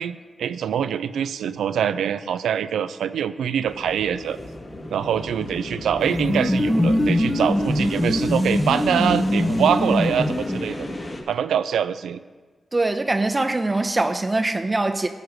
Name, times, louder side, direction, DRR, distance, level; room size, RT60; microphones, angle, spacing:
voice 1, 0.0-4.4 4.9-10.8 11.3-12.2, right 8 dB, 85° right, 0.4 m, -24 dB
sound 1, 3.6-11.2, left 1 dB, 50° left, 2.1 m, -33 dB
sound 2, 6.0-10.9, left 1 dB, 20° left, 0.9 m, -22 dB
voice 2, 12.7-15.1, right 2 dB, 30° right, 0.7 m, -22 dB
13.5 x 4.7 x 6.5 m
supercardioid pair, 40°, 0 cm